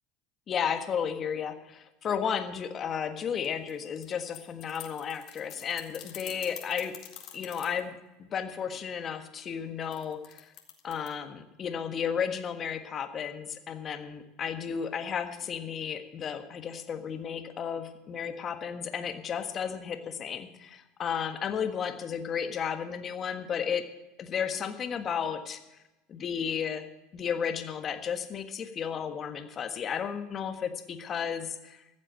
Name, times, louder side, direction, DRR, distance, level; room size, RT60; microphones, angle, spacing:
voice 1, 0.5-6.9 7.3-10.5 10.8-23.9 24.2-25.6 26.1-26.9 27.1-32.0, left 7 dB, 40° left, 8 dB, 1.5 m, -33 dB
sound 1, 3.4-7.8 9.9-11.1, left 12 dB, 55° left, 2.1 m, -45 dB
14.5 x 7.5 x 7.6 m, 0.98 s
hypercardioid pair, 90°, 0 cm